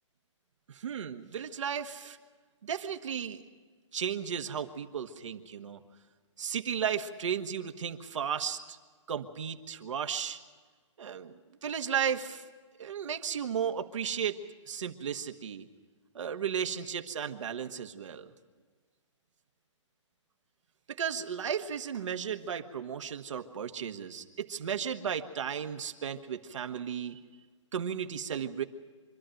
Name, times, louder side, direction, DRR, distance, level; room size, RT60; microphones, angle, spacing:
voice 1, 0.7-2.2 2.6-3.4 3.9-5.8 6.4-8.8 9.1-10.4 11.0-12.4 12.8-15.7 16.1-18.3 20.9-27.2 27.7-28.6, right 8 dB, 70° right, 6 dB, 1.5 m, -34 dB
25.5 x 12.5 x 9.1 m, 1.5 s
hypercardioid pair, 155°, 16 cm